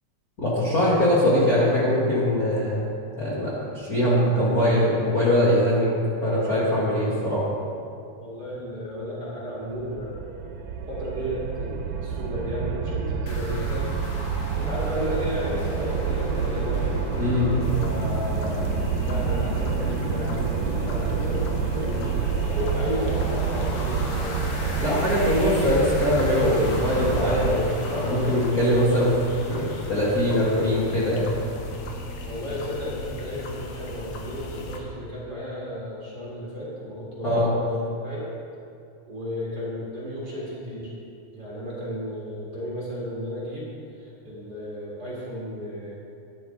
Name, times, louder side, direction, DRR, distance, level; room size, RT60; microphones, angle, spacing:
voice 1, 0.4-2.8 3.2-6.0 6.2-7.4 17.2-17.5 24.8-29.1 29.5-31.4 37.2-37.5, left 1 dB, 40° left, -9 dB, 1.4 m, -22 dB
voice 2, 8.2-10.4 10.9-14.0 14.5-16.9 17.7-22.3 22.5-24.9 32.2-38.3 39.1-40.9 41.3-45.9, equal, 35° right, -7 dB, 2.2 m, -33 dB
sound 1, 9.8-27.6, right 6 dB, 75° right, 2.0 m, -28 dB
sound 2, 13.3-31.8, left 2 dB, 85° left, 2.9 m, -38 dB
sound 3, 17.6-34.8, left 2 dB, 65° left, 2.0 m, -37 dB
11.0 x 10.5 x 3.8 m, 2.5 s
omnidirectional pair, 3.7 m